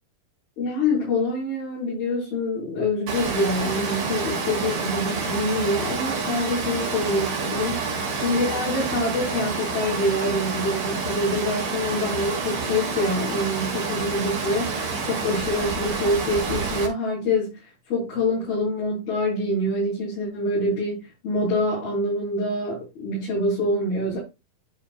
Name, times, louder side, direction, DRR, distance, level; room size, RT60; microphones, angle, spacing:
voice 1, 0.6-7.8 8.2-17.5 17.9-24.2, left 1 dB, 80° left, 6.4 m, -25 dB
Water, 3.1-16.9, right 4 dB, 50° right, 3.2 m, -28 dB
11.5 x 6.7 x 2.3 m
omnidirectional pair, 4.2 m